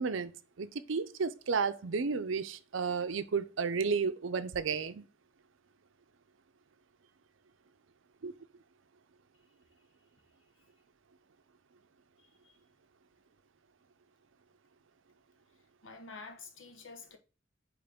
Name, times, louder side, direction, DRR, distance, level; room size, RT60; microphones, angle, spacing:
voice 1, 0.0-5.1 8.2-8.3, right 5 dB, 75° right, 0.6 m, -32 dB
voice 2, 15.8-17.2, left 4 dB, 75° left, 1.1 m, -48 dB
8.7 x 3.1 x 3.5 m
head